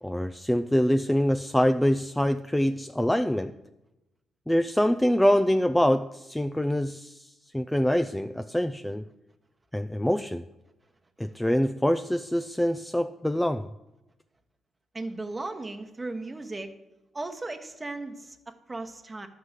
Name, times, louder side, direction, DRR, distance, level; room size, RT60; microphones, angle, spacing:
voice 1, 0.0-3.6 4.5-9.0 9.7-10.4 11.2-13.7, equal, 5° left, 8 dB, 0.3 m, -25 dB
voice 2, 14.9-16.7 17.1-19.3, right 2 dB, 20° right, 5 dB, 1.1 m, -36 dB
11.5 x 4.8 x 8.1 m, 0.96 s
cardioid pair, 90°, 0 cm